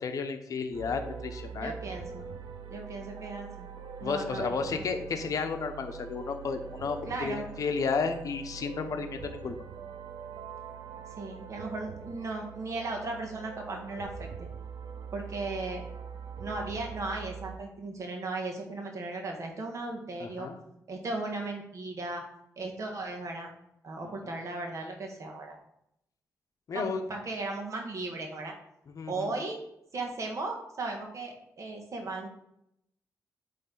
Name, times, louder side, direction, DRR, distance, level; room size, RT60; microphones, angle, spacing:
voice 1, 0.0-1.7 4.0-9.5 20.2-20.6 24.2-24.4 26.7-27.0 28.9-29.3, left 5 dB, 60° left, 6 dB, 0.8 m, -32 dB
sound 1, 0.7-17.6, right 6 dB, 75° right, 0.7 m, -43 dB
voice 2, 1.6-2.3 2.7-3.7 4.0-4.8 7.1-7.5 11.2-14.3 15.1-15.9 16.4-20.5 20.9-22.2 22.6-23.5 23.8-25.6 26.7-26.8 27.1-28.5 29.1-29.6 29.9-32.3, right 2 dB, 50° right, 1 dB, 1.4 m, -36 dB
8.5 x 3.3 x 3.9 m, 0.77 s
cardioid pair, 115°, 7 cm